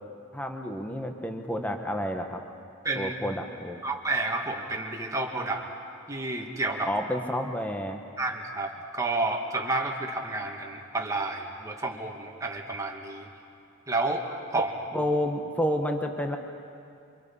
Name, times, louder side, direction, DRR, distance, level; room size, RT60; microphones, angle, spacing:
voice 1, 0.3-2.4 3.0-3.8 6.9-8.0 14.5-14.6 14.9-16.4, equal, 5° left, 4 dB, 1.2 m, -30 dB
voice 2, 3.8-5.6 6.1-6.9 8.2-13.3 13.9-14.2 14.5-14.7, right 2 dB, 15° right, 0 dB, 2.2 m, -30 dB
28.5 x 25.5 x 5.6 m, 2.5 s
head